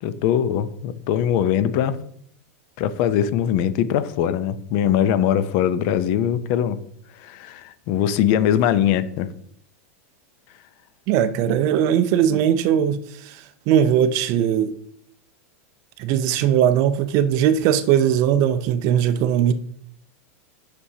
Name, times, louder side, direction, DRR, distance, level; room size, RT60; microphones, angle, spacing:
voice 1, 0.0-2.0 2.8-6.8 7.2-9.3 11.4-11.5, left 10 dB, 45° left, 0.5 m, -21 dB
voice 2, 11.1-13.4 13.7-14.7 16.0-19.5, right 9 dB, 45° right, 0.5 m, -19 dB
8.3 x 6.0 x 2.8 m
supercardioid pair, 145°, 8 cm